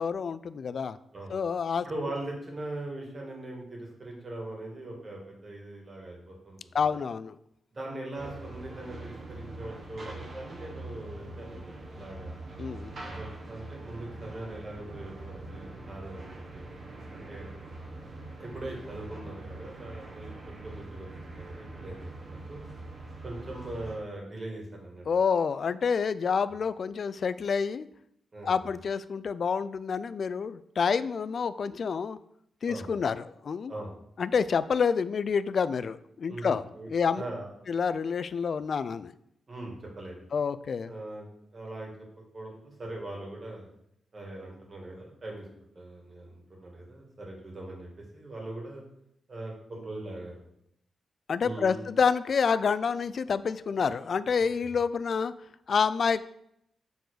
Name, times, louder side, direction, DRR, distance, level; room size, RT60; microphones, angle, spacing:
voice 1, 0.0-1.0 1.3-1.9 6.7-7.4 12.6-12.9 25.1-27.9 28.4-32.2 32.6-33.7 34.2-36.6 36.9-37.2 37.7-39.1 40.3-40.9 51.3-55.3 55.7-56.2, left 6 dB, 55° left, 14 dB, 0.3 m, -28 dB
voice 2, 1.8-6.9 7.7-12.3 13.0-16.6 17.1-17.5 18.4-22.7 23.2-25.0 28.3-28.7 32.7-32.9 33.7-33.9 36.3-36.9 37.1-37.5 39.5-40.2 40.9-41.9 42.3-43.7 44.1-45.5 45.7-48.8 49.3-50.4 51.4-51.8, right 2 dB, 35° right, -2 dB, 2.1 m, -41 dB
sound 1, 8.1-24.0, right 2 dB, 50° right, 1.2 m, -43 dB
6.9 x 3.9 x 4.8 m, 0.75 s
wide cardioid pair, 115°, 0 cm